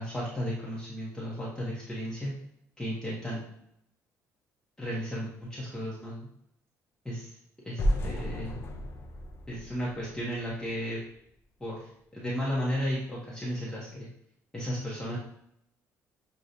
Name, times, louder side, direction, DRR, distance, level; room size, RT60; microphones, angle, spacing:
voice 1, 0.0-2.3 2.8-3.4 4.8-6.3 7.0-7.3 7.6-8.6 9.5-11.0 11.6-14.1 14.5-15.2, equal, 10° left, -7 dB, 0.9 m, -34 dB
sound 1, 7.8-10.8, equal, 40° left, 0.6 m, -32 dB
6.4 x 2.3 x 2.7 m, 0.75 s
cardioid pair, 135°, 6 cm